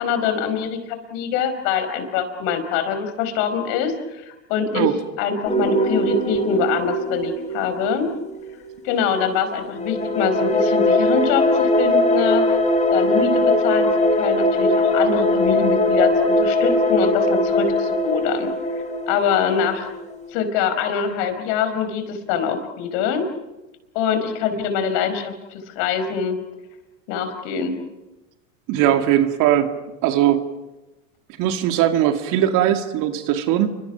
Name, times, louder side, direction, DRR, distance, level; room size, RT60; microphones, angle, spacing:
voice 1, 0.0-4.9 5.2-8.1 8.8-12.6 12.9-18.5 19.1-19.9 20.3-23.3 24.0-26.4 27.1-27.7, left 6 dB, 60° left, 8 dB, 5.2 m, -24 dB
sound 1, 5.5-9.1 9.6-20.3, left 1 dB, 15° left, 7.3 m, -20 dB
voice 2, 28.7-29.7 30.0-30.4 31.4-33.7, right 11 dB, 50° right, 6 dB, 2.3 m, -19 dB
29.5 x 25.0 x 6.0 m, 1.0 s
hypercardioid pair, 100°, 40 cm